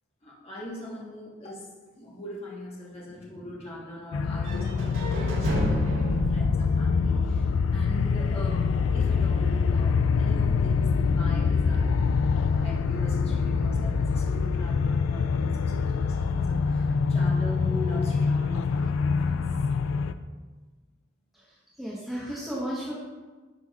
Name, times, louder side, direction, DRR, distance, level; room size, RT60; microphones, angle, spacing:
voice 1, 0.2-19.5, left 1 dB, 30° left, -6 dB, 1.3 m, -41 dB
sound 1, 4.1-20.1, left 5 dB, 85° left, 0.4 m, -25 dB
sound 2, 4.4-8.4, equal, 80° right, 2.4 m, -31 dB
voice 2, 21.8-23.0, equal, ahead, -7 dB, 1.1 m, -33 dB
10.5 x 6.3 x 2.4 m, 1.3 s
head